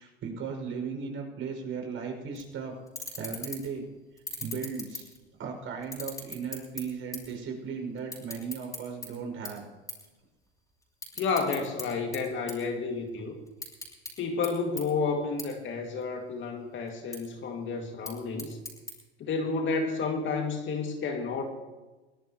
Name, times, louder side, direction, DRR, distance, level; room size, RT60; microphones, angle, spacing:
voice 1, 0.0-2.7 3.2-3.8 4.4-5.1 5.4-9.6, right 5 dB, 40° right, 2 dB, 6.3 m, -36 dB
sound 1, 2.3-2.5 2.9-3.8 4.2-5.4 5.8-7.4 7.6-9.1 9.5-9.6 9.9-10.1 10.4-11.8 12.1-13.1 13.5-14.1 14.4-14.5 14.8-14.9 15.4-15.5 15.9-16.4 16.9-17.2 17.8-18.9, left 2 dB, 10° left, 6.8 m, -39 dB
voice 2, 11.2-13.4 14.2-18.6 19.2-21.4, left 4 dB, 40° left, 3 dB, 2.3 m, -31 dB
23.5 x 18.0 x 3.1 m, 1.2 s
hypercardioid pair, 95°, 32 cm